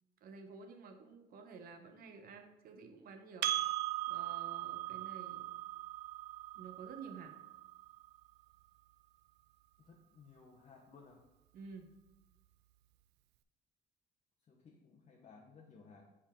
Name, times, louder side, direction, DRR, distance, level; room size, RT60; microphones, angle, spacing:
voice 1, 0.2-3.5 4.1-5.4 6.5-7.3 11.5-11.9, right 5 dB, 60° right, 5 dB, 0.9 m, -51 dB
Percussion, 3.4-8.2, right 14 dB, 80° right, 0.4 m, -39 dB
voice 2, 9.8-11.2 14.5-16.1, left 4 dB, 40° left, -1 dB, 1.0 m, -59 dB
6.9 x 4.4 x 3.7 m, 0.99 s
cardioid pair, 110°, 17 cm